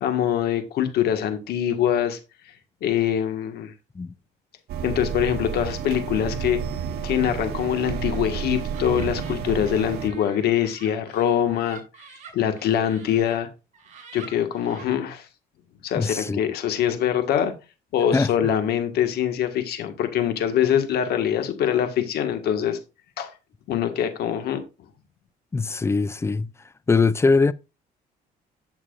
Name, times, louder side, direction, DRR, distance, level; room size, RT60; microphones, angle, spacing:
voice 1, 0.0-2.2 2.8-3.7 4.8-6.6 7.0-11.8 12.3-13.5 14.1-15.3 15.8-17.5 17.9-22.8 23.2-23.3 23.7-24.6, left 9 dB, 70° left, 1.7 m, -24 dB
sound 1, 4.7-10.1, right 7 dB, 70° right, 1.5 m, -30 dB
Laughter, 7.2-13.4 13.7-14.9, right 6 dB, 45° right, 5.5 m, -47 dB
voice 2, 16.0-16.4 18.1-18.5 25.5-26.5 26.9-27.5, left 4 dB, 15° left, 0.3 m, -21 dB
11.0 x 7.3 x 2.5 m
cardioid pair, 110°, 17 cm